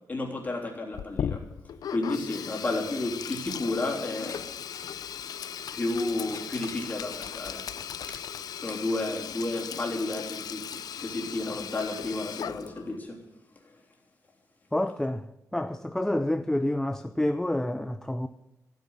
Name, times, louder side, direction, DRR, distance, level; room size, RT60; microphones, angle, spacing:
voice 1, 0.1-1.5 1.9-4.4 5.7-7.7 8.1-8.2 8.5-10.7 11.0-13.2, left 2 dB, 25° left, 3.4 m, -32 dB
Sink (filling or washing), 0.9-13.0, left 8 dB, 80° left, 0.6 m, -37 dB
sound 1, 4.2-4.9 5.9-7.3 8.0-8.1 9.4-9.5, left 5 dB, 60° left, 3.1 m, -47 dB
voice 2, 14.7-18.3, left 1 dB, 5° left, 0.5 m, -28 dB
15.5 x 9.4 x 8.1 m
wide cardioid pair, 165°, 6 cm